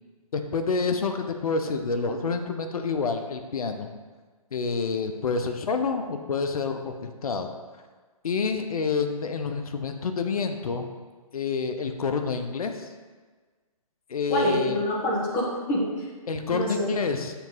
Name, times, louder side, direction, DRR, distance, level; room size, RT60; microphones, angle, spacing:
voice 1, 0.3-3.9 4.5-7.5 8.2-10.9 11.3-12.9 14.1-14.8 16.3-17.3, left 4 dB, 70° left, 6 dB, 0.7 m, -28 dB
voice 2, 14.3-16.1 16.5-16.9, equal, 20° left, -2 dB, 1.1 m, -26 dB
7.0 x 3.0 x 5.5 m, 1.4 s
hypercardioid pair, 150°, 19 cm